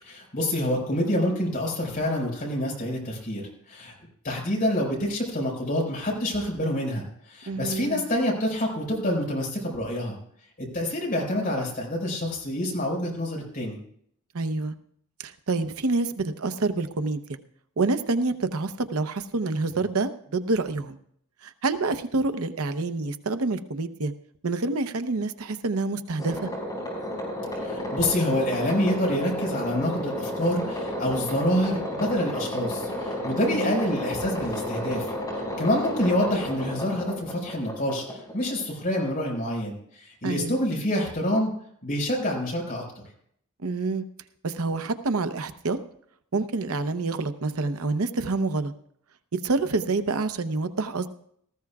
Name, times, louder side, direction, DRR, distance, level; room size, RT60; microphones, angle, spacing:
voice 1, 0.0-3.4 3.7-3.9 4.2-10.2 10.6-13.8 27.5-35.1 35.6-41.5 41.8-43.0, left 1 dB, 40° left, -1 dB, 5.0 m, -27 dB
voice 2, 7.5-8.0 14.3-14.7 15.2-17.4 17.8-21.0 21.4-24.1 24.4-26.5 33.5-33.7 40.2-40.6 43.6-44.0 44.4-45.8 46.3-48.7 49.3-51.1, right 3 dB, 85° right, 11 dB, 0.8 m, -27 dB
sound 1, 26.2-38.8, left 1 dB, 20° left, 5.8 m, -32 dB
18.5 x 14.5 x 2.4 m, 0.68 s
head